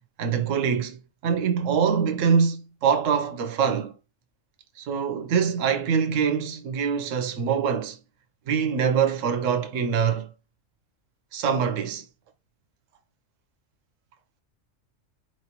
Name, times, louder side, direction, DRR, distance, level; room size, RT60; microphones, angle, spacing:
voice 1, 0.2-3.9 4.8-8.0 8.5-10.3 11.3-12.0, right 6 dB, 80° right, 1.1 m, -24 dB
4.5 x 3.2 x 2.9 m
omnidirectional pair, 1.3 m